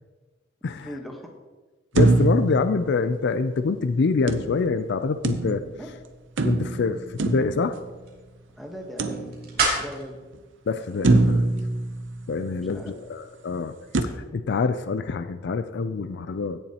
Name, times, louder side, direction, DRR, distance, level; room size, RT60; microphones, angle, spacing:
voice 1, 0.7-1.2 5.8-5.9 8.6-10.2 12.7-12.9, equal, ahead, 1 dB, 1.1 m, -39 dB
voice 2, 1.9-5.6 6.5-7.0 7.2-7.8 10.7-11.4 12.3-13.7 14.0-16.6, left 4 dB, 60° left, 11 dB, 0.4 m, -25 dB
sound 1, 2.0-3.6 4.3-5.9 6.4-8.3 9.0-9.8 10.3-10.4 11.0-12.7 13.9-14.0, right 2 dB, 65° right, 0.7 m, -24 dB
sound 2, 6.6-11.8, right 3 dB, 50° right, 2.5 m, -34 dB
16.0 x 7.0 x 2.9 m, 1.3 s
head